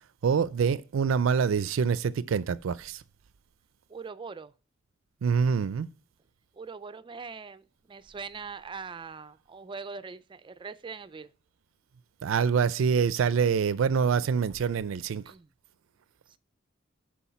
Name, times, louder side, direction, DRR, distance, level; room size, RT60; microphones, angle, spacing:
voice 1, 0.2-3.0 5.2-5.9 12.2-15.2, right 6 dB, 85° right, 0.4 m, -25 dB
voice 2, 3.9-4.5 6.5-11.3 15.2-15.5 16.3-16.4, right 5 dB, 25° right, 0.4 m, -42 dB
7.1 x 4.6 x 5.6 m
head